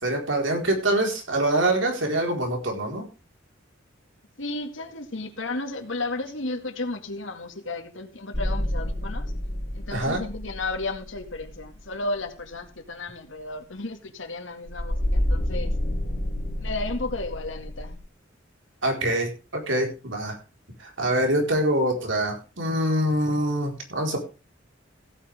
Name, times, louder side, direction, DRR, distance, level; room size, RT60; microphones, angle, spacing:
voice 1, 0.0-3.0 9.9-10.2 18.8-19.3 19.7-20.4 20.8-24.2, right 1 dB, 90° right, 4.5 m, -24 dB
voice 2, 4.4-9.3 9.7-15.7 16.6-18.0, left 2 dB, 85° left, 2.2 m, -33 dB
sound 1, 8.3-11.9 14.7-18.0, left 1 dB, 40° left, 3.4 m, -29 dB
16.0 x 9.5 x 3.6 m
head